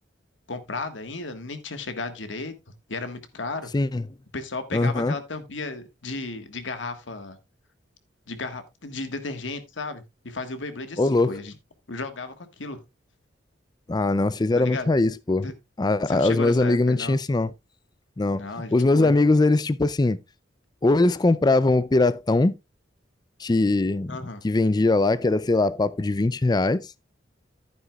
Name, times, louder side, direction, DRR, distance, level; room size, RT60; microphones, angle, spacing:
voice 1, 0.5-2.5 2.9-3.7 4.3-7.4 8.3-11.5 11.9-12.8 14.5-14.9 15.4-15.5 16.1-17.2 18.3-19.1 24.1-24.4, left 3 dB, 75° left, 1.5 m, -34 dB
voice 2, 3.7-4.1 4.7-5.1 11.0-11.4 13.9-15.5 15.8-17.5 18.2-20.2 20.8-22.5 23.4-24.2 24.4-26.9, left 2 dB, 20° left, 0.4 m, -21 dB
11.0 x 9.8 x 2.3 m
head